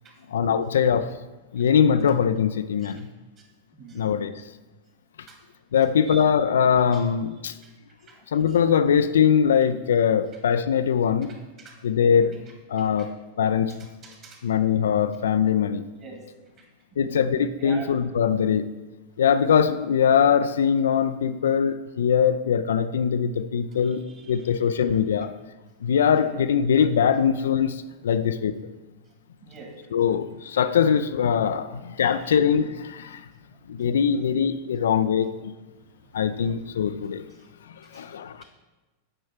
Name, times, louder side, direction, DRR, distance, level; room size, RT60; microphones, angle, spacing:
voice 1, 0.3-1.1 1.5-3.1 3.9-4.4 5.7-7.5 8.3-11.3 11.8-12.4 12.7-13.7 14.4-15.8 17.0-18.6 19.2-24.0 24.3-25.3 25.8-28.5 29.9-33.2 33.7-35.5 36.1-37.3 37.7-38.4, left 7 dB, 65° left, 11 dB, 0.3 m, -22 dB
voice 2, 3.7-4.1 5.3-5.4 6.1-6.2 6.8-7.0 7.5-7.6 8.0-8.2 11.6-11.7 12.1-12.4 13.0-13.1 14.2-14.4 15.9-16.2 16.9-17.2 17.6-17.9 23.8-24.7 26.2-26.4 29.4-29.7 32.0-32.4 35.8-35.9 37.3-37.5 37.8-38.1, right 4 dB, 30° right, 1 dB, 1.9 m, -45 dB
8.7 x 5.5 x 4.4 m, 1.1 s
figure-of-eight pair, 90°, 0 cm